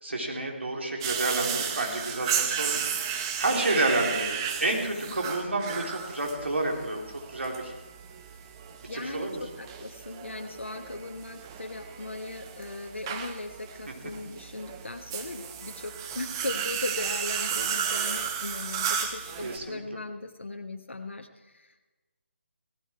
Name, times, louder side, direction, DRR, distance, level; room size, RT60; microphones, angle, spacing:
voice 1, 0.0-2.9 3.4-7.0 7.3-7.7 8.9-9.4 13.9-14.0 19.4-20.0, right 2 dB, 70° right, 0 dB, 3.6 m, -30 dB
sound 1, 1.0-19.6, right 7 dB, 20° right, 0.9 m, -34 dB
voice 2, 5.0-5.3 8.8-21.9, left 2 dB, 75° left, 4 dB, 1.2 m, -38 dB
17.0 x 13.5 x 4.6 m, 1.2 s
figure-of-eight pair, 150°, 7 cm